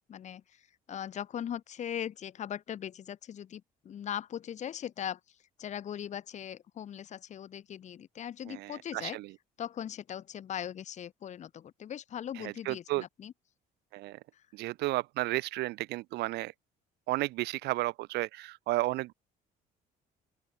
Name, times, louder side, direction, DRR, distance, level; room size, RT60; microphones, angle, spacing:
voice 1, 0.1-9.2 9.6-13.3 14.3-14.4, left 9 dB, 45° left, 0.9 m, -40 dB
voice 2, 8.5-9.3 12.4-13.0 13.9-14.2 14.5-16.5 17.1-19.1, right 19 dB, 80° right, 0.6 m, -33 dB
open air
cardioid pair, 110°, 17 cm